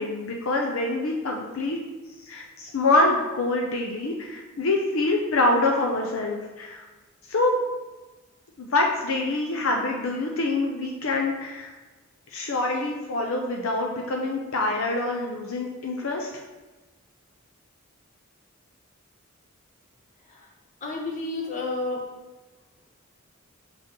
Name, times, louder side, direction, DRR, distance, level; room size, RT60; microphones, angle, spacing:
voice 1, 0.0-1.8 2.3-6.8 7.3-7.5 8.6-11.7 12.3-16.3, left 2 dB, 70° left, 1 dB, 0.6 m, -25 dB
voice 2, 20.8-22.0, left 2 dB, 35° left, 0 dB, 1.1 m, -31 dB
6.0 x 5.9 x 3.0 m, 1.2 s
head